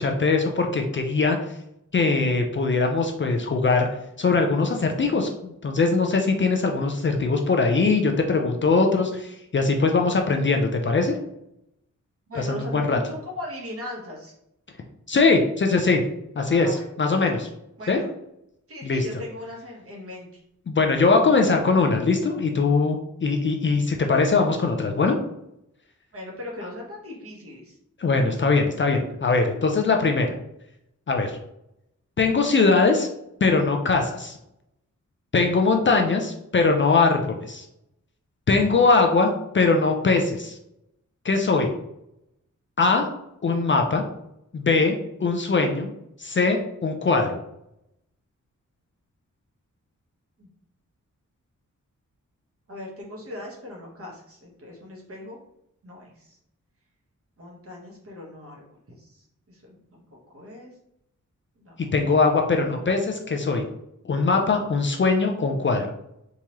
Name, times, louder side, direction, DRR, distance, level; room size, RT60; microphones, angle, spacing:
voice 1, 0.0-1.4 1.9-3.9 4.2-11.2 12.4-13.0 15.1-16.0 16.4-17.5 17.9-18.0 18.8-19.1 20.7-25.2 28.0-30.3 31.1-31.4 32.2-33.1 33.4-34.3 35.3-37.6 38.5-40.5 41.2-41.7 42.8-43.1 43.4-44.0 44.5-45.9 46.2-47.4 61.9-63.6 64.0-65.9, left 4 dB, 40° left, 3 dB, 0.4 m, -21 dB
voice 2, 12.3-14.3 16.5-16.8 17.1-17.4 17.8-18.1 18.7-20.4 26.1-27.8 50.4-50.5 52.7-55.4 55.8-56.4 57.4-58.6 58.9-60.0 60.3-60.7 61.6-61.8 62.1-62.2 62.6-63.0, left 1 dB, 45° right, -2 dB, 1.1 m, -39 dB
3.5 x 2.9 x 3.0 m, 0.80 s
wide cardioid pair, 180°, 31 cm